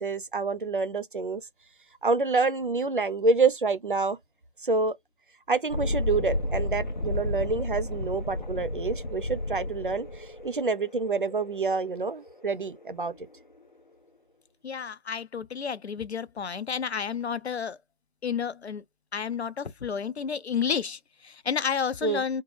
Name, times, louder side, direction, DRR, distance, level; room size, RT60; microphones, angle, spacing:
voice 1, 0.0-1.4 2.0-4.2 4.6-5.0 5.5-13.1 22.0-22.2, right 4 dB, 55° right, 0.5 m, -27 dB
Thunderstorm, 5.7-13.1, left 1 dB, 45° left, 0.5 m, -32 dB
voice 2, 14.6-17.8 18.2-18.8 19.1-22.4, left 6 dB, 85° left, 0.7 m, -31 dB
3.6 x 2.3 x 3.3 m
figure-of-eight pair, 180°, 32 cm